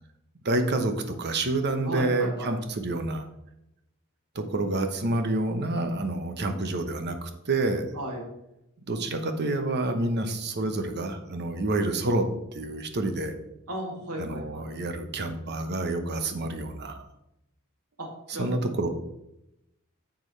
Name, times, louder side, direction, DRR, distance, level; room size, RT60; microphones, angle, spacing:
voice 1, 0.4-3.2 4.3-7.8 8.9-12.3 12.5-13.3 14.2-17.0 18.4-18.9, right 2 dB, 50° right, 7 dB, 1.0 m, -28 dB
voice 2, 1.8-2.5 7.9-8.2 13.7-14.7 18.0-18.5, right 1 dB, 75° right, -1 dB, 2.5 m, -35 dB
9.6 x 7.1 x 3.3 m, 0.87 s
head